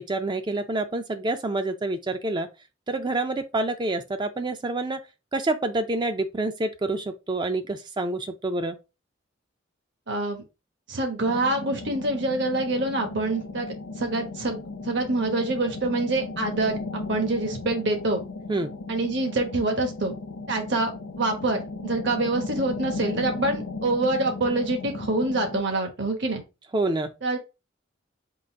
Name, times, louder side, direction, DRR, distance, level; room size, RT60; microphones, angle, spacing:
voice 1, 0.0-2.5 2.9-5.0 5.3-8.8 18.5-18.7 26.7-27.1, right 2 dB, 25° right, 0.4 m, -27 dB
voice 2, 10.1-10.4 10.9-13.7 14.0-18.2 18.9-20.1 20.5-20.9 21.2-26.4 27.2-27.4, right 2 dB, 60° right, 1.1 m, -26 dB
sound 1, 11.2-25.6, left 3 dB, 80° left, 0.6 m, -36 dB
3.8 x 2.4 x 4.4 m
head